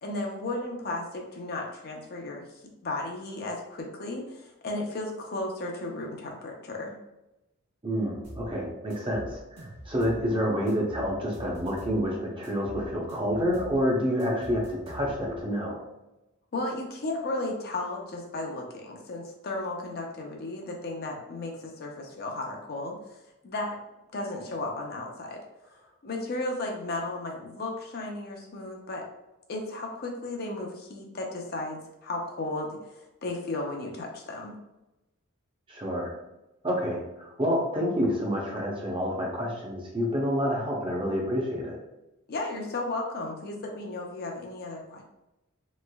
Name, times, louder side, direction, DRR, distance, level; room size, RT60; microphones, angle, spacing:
voice 1, 0.0-2.5 2.8-7.0 16.5-23.0 23.4-23.8 24.1-25.4 26.0-29.1 29.5-34.5 42.3-45.0, left 2 dB, 45° left, 1 dB, 0.5 m, -34 dB
voice 2, 7.8-15.8 35.7-36.1 36.6-41.8, equal, 25° right, -2 dB, 0.6 m, -28 dB
sound 1, 8.2-8.5 8.9-10.3 10.7-12.0 12.4-13.8 14.2-15.4, equal, 55° right, 1.2 m, -43 dB
3.1 x 2.9 x 2.2 m, 0.94 s
head